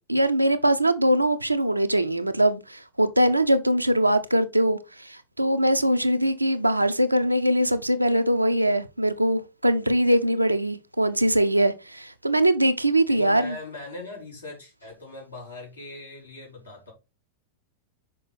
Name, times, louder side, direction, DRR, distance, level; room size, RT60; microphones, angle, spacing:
voice 1, 0.1-13.5, right 1 dB, 85° right, 0.7 m, -22 dB
voice 2, 13.1-16.9, left 2 dB, 75° left, 4.1 m, -40 dB
6.1 x 5.0 x 4.2 m
figure-of-eight pair, 90°, 0 cm